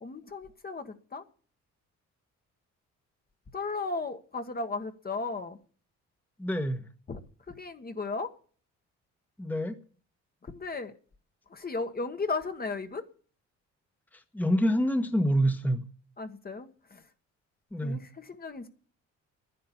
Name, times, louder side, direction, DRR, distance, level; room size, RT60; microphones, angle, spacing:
voice 1, 0.0-1.2 3.5-5.6 7.1-7.2 7.5-8.3 10.4-10.9 11.5-13.1 16.2-17.0 17.8-18.7, left 3 dB, 30° left, 1.4 m, -35 dB
voice 2, 6.4-6.8 9.4-9.8 14.3-15.8 17.7-18.0, equal, 5° left, 1.2 m, -26 dB
10.5 x 9.6 x 8.5 m
cardioid pair, 90°, 30 cm